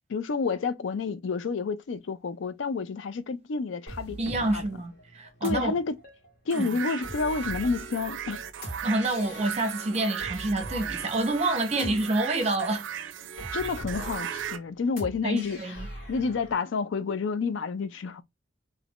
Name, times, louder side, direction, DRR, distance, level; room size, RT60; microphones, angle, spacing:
voice 1, 0.1-4.6 5.4-5.9 6.5-8.4 11.8-11.9 13.5-15.8 16.1-18.2, left 4 dB, 80° left, 0.4 m, -30 dB
sound 1, 3.9-16.6, right 1 dB, 50° left, 1.4 m, -42 dB
voice 2, 4.2-5.8 6.5-6.8 8.8-12.9 15.2-15.9, right 2 dB, 35° right, 0.7 m, -28 dB
sound 2, 6.5-14.6, right 8 dB, 85° right, 0.4 m, -37 dB
2.7 x 2.4 x 3.5 m
head